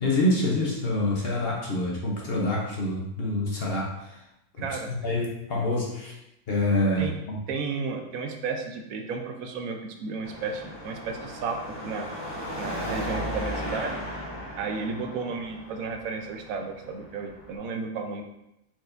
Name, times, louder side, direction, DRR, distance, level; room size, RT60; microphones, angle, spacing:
voice 1, 0.0-4.2 4.7-6.2 6.5-7.4, left 1 dB, 50° left, -2 dB, 0.8 m, -26 dB
voice 2, 4.6-4.9 7.0-7.1 7.5-12.1 12.6-14.0 14.6-18.2, right 4 dB, 75° right, 4 dB, 1.0 m, -33 dB
Car passing by / Traffic noise roadway noise / Engine, 10.2-17.6, equal, 20° left, 1.3 m, -36 dB
4.6 x 4.3 x 2.5 m, 0.85 s
omnidirectional pair, 1.5 m